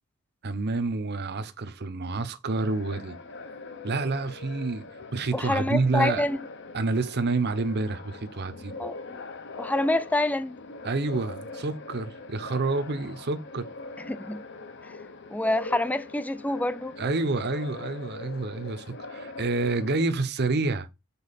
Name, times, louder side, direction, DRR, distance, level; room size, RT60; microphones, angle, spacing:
voice 1, 0.4-3.2 3.8-4.8 5.1-6.2 6.7-8.7 10.8-13.7 17.0-20.9, right 3 dB, 50° right, 0.8 m, -28 dB
sound 1, 2.6-20.1, left 3 dB, 55° left, 1.0 m, -42 dB
voice 2, 5.3-6.4 8.8-9.2 9.6-10.6 14.0-14.4 15.3-16.9, left 1 dB, 5° left, 0.4 m, -27 dB
7.0 x 4.5 x 4.2 m
head